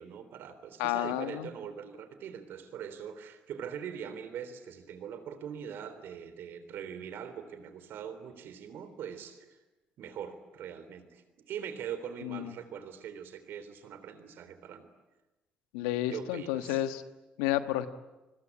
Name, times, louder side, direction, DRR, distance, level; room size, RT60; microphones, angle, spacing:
voice 1, 0.0-9.6 10.0-14.9 16.1-16.9, right 8 dB, 70° right, 11 dB, 3.6 m, -42 dB
voice 2, 0.8-1.5 12.2-12.5 15.7-17.0 17.4-17.9, left 13 dB, 85° left, 10 dB, 1.4 m, -31 dB
28.0 x 21.5 x 9.7 m, 1.1 s
hypercardioid pair, 55°, 4 cm